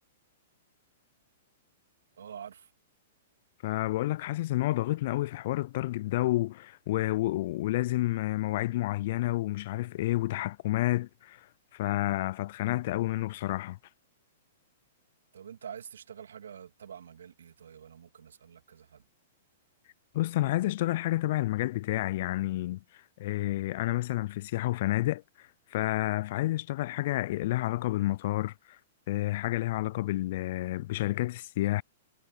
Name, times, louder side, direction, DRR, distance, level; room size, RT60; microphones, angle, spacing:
voice 1, 2.2-2.7 15.3-19.0, right 8 dB, 75° right, 2.8 m, -46 dB
voice 2, 3.6-11.5 11.7-13.8 20.1-22.8 23.2-25.2 25.7-28.5 29.1-31.8, left 16 dB, 55° left, 0.4 m, -29 dB
hypercardioid pair, 110°, 0 cm